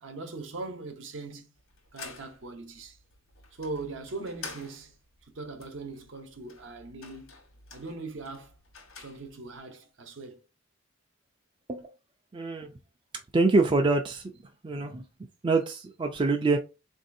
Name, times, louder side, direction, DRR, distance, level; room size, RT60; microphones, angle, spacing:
voice 1, 0.0-1.5 1.9-3.0 3.5-5.0 5.2-7.4 7.7-8.6 9.0-10.4, right 3 dB, 65° right, 0.7 m, -40 dB
sound 1, 1.6-9.6, left 4 dB, 85° left, 1.2 m, -49 dB
voice 2, 12.3-12.7 13.3-14.3 14.6-15.0 15.4-16.6, right 3 dB, 25° right, 0.3 m, -25 dB
3.8 x 2.6 x 2.6 m
head